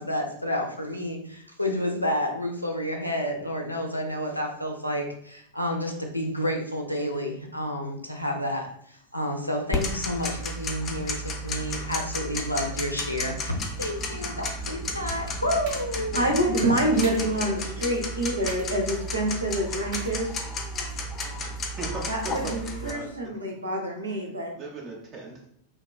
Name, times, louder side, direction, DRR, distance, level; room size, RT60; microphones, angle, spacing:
voice 1, 0.0-16.2, left 1 dB, 85° left, 2 dB, 0.4 m, -30 dB
Tick-tock, 9.7-22.9, left 1 dB, 25° left, 0.4 m, -33 dB
sound 1, 15.1-21.1, right 1 dB, 55° right, 0.9 m, -47 dB
voice 2, 16.1-20.4 22.1-24.5, right 1 dB, 80° right, -1 dB, 0.6 m, -26 dB
voice 3, 17.1-17.8 21.8-23.1 24.1-24.2 24.5-25.5, right 3 dB, 30° right, -1 dB, 0.5 m, -39 dB
3.4 x 2.2 x 2.3 m, 0.69 s
figure-of-eight pair, 90°, 0 cm